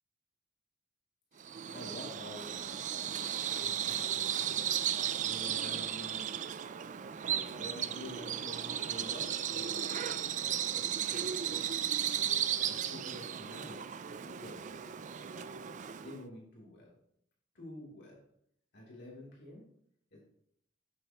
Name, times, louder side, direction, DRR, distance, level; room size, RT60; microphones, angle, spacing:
Bird vocalization bird call bird song, 1.4-16.2, right 9 dB, 40° right, 0.4 m, -35 dB
voice 1, 1.7-4.8 5.2-6.3 7.3-10.3 10.7-11.7 12.6-13.8 14.1-15.6 15.9-16.9 17.5-18.2 18.7-19.6 20.1-20.2, left 1 dB, 55° left, -4 dB, 3.2 m, -49 dB
9.4 x 8.0 x 3.0 m, 0.71 s
head